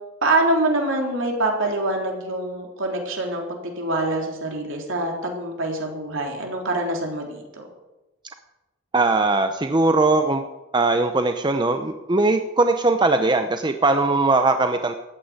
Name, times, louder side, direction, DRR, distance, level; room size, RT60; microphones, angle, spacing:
voice 1, 0.2-7.7, right 2 dB, 60° right, 1 dB, 3.7 m, -25 dB
voice 2, 8.9-10.4 10.7-14.9, right 3 dB, 20° right, 7 dB, 0.6 m, -20 dB
14.5 x 9.3 x 9.6 m, 1.1 s
head